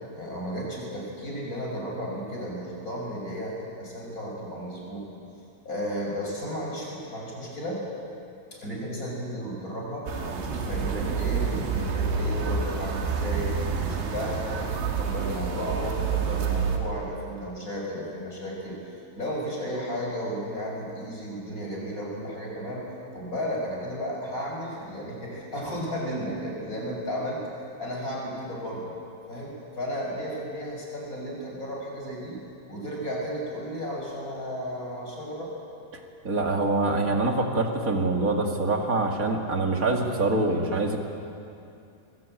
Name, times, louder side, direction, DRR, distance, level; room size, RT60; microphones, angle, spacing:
voice 1, 0.1-5.0 5.6-7.8 8.5-13.5 13.8-18.8 19.1-22.8 23.1-27.4 27.8-28.9 29.3-32.4 32.7-35.5, equal, 20° left, -3 dB, 6.4 m, -33 dB
sound 1, 10.1-16.8, right 5 dB, 90° right, 4.3 m, -28 dB
voice 2, 36.2-41.0, right 2 dB, 35° right, 2 dB, 1.4 m, -25 dB
24.5 x 21.5 x 9.0 m, 2.6 s
omnidirectional pair, 4.7 m